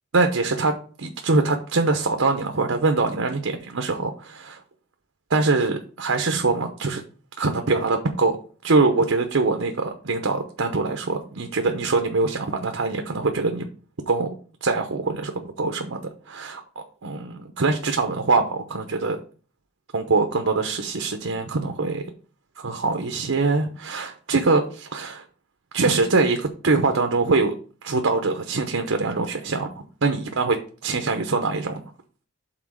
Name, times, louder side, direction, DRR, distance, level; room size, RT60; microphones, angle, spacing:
voice 1, 0.1-4.6 5.3-7.0 7.4-8.4 8.6-13.7 14.1-14.3 14.6-16.0 16.3-16.6 17.0-19.2 19.9-22.0 22.6-25.2 25.7-27.5 27.8-29.7 30.0-30.6 30.8-31.8, right 3 dB, 85° right, 5 dB, 0.8 m, -23 dB
6.0 x 4.0 x 6.3 m, 0.40 s
head